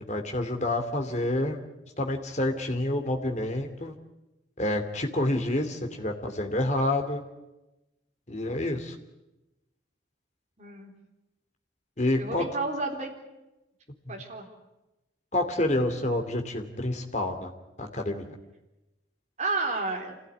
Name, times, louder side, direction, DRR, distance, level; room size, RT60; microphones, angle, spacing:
voice 1, 0.0-1.6 2.0-3.9 4.6-7.2 8.3-9.0 12.0-12.4 15.3-17.5 17.8-18.3, left 1 dB, 35° left, 3 dB, 2.6 m, -28 dB
voice 2, 10.6-10.9 12.2-13.1 14.1-14.5 19.4-20.2, right 3 dB, 35° right, 1 dB, 3.7 m, -31 dB
26.5 x 16.5 x 9.6 m, 0.99 s
head